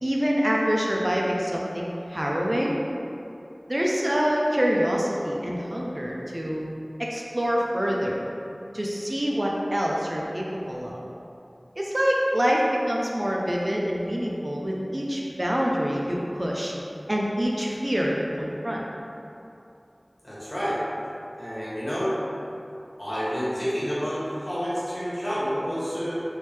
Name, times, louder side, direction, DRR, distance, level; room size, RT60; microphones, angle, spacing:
voice 1, 0.0-2.8 3.7-6.7 7.0-8.2 8.7-11.0 11.8-16.7 17.1-18.8, equal, 40° right, -3 dB, 0.4 m, -26 dB
voice 2, 20.2-20.8 21.4-22.2 23.0-26.2, equal, 40° left, -11 dB, 1.2 m, -29 dB
3.2 x 3.1 x 3.3 m, 2.8 s
wide cardioid pair, 40°, 0 cm